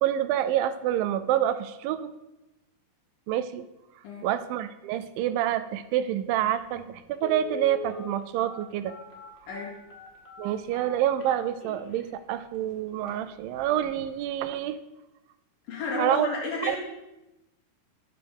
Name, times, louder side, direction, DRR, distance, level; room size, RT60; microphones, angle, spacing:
voice 1, 0.0-2.1 3.3-3.6 4.2-8.9 10.4-14.8 16.0-16.3 16.6-16.8, right 11 dB, 90° right, 12 dB, 2.3 m, -27 dB
Telephone, 6.4-6.5 7.1-12.0 12.5-12.6 13.0-13.2 13.6-13.9 14.2-14.3, left 3 dB, 35° left, 1.0 m, -40 dB
voice 2, 9.5-9.8 15.7-16.8, left 3 dB, 75° left, -3 dB, 3.8 m, -32 dB
12.0 x 7.7 x 3.5 m, 0.97 s
omnidirectional pair, 4.0 m